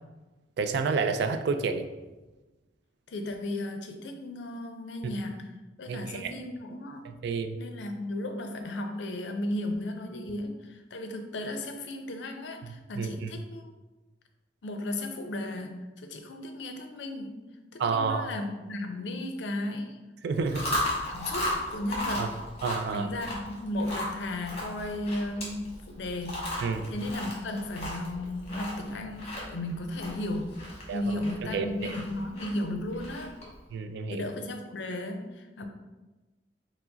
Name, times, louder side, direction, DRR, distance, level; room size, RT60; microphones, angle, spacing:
voice 1, 0.6-1.9 5.9-6.3 7.0-7.6 12.6-13.3 17.8-18.3 20.2-20.6 22.2-22.3 22.6-23.1 26.6-26.9 30.9-31.0 31.5-32.0 33.7-34.3, right 5 dB, 65° right, 7 dB, 0.3 m, -30 dB
voice 2, 3.1-5.5 5.8-7.1 7.6-13.7 14.6-17.4 17.7-20.0 21.1-22.3 22.9-26.5 26.9-30.5 30.9-33.3 34.1-35.7, left 1 dB, 70° left, 5 dB, 0.5 m, -35 dB
Chewing mastication, 20.3-33.6, left 1 dB, 35° left, 1.1 m, -36 dB
4.6 x 2.0 x 3.9 m, 1.2 s
head